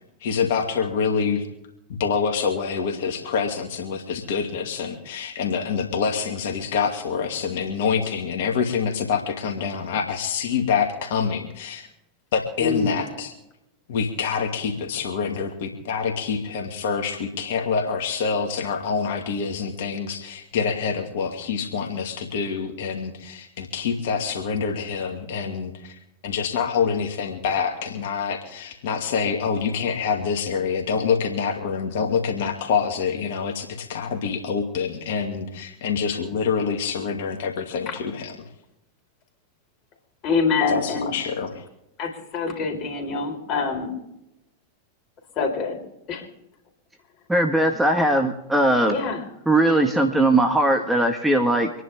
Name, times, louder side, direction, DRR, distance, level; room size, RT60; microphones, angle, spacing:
voice 1, 0.2-1.5 2.0-11.9 12.3-13.3 13.9-38.5 40.7-41.6, left 6 dB, 55° left, 3 dB, 2.5 m, -26 dB
voice 2, 12.6-13.0 37.9-38.0 40.2-41.1 42.0-43.9 45.4-45.8 46.1-46.3 48.9-49.2, left 4 dB, 35° left, 3 dB, 4.5 m, -25 dB
voice 3, 47.3-49.0 49.5-51.7, right 1 dB, 5° right, 4 dB, 1.7 m, -19 dB
26.5 x 11.0 x 3.6 m, 0.84 s
figure-of-eight pair, 90°, 0 cm